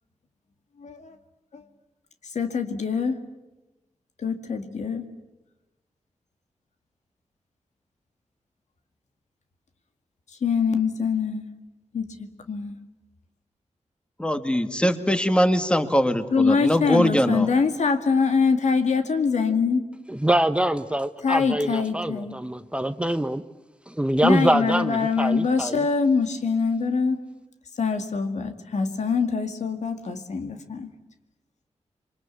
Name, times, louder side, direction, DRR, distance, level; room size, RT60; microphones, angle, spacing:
voice 1, 0.8-1.2 1.5-1.6 2.3-3.2 4.2-5.1 10.4-11.5 11.9-12.8 16.3-19.8 21.2-22.4 24.2-27.2 27.8-30.9, left 5 dB, 80° left, 7 dB, 2.2 m, -24 dB
voice 2, 14.2-17.5, equal, 10° left, 8 dB, 1.9 m, -22 dB
voice 3, 20.1-23.4 23.9-25.9, right 1 dB, 10° right, 10 dB, 0.9 m, -24 dB
27.0 x 24.0 x 8.4 m, 1.0 s
wide cardioid pair, 85°, 12 cm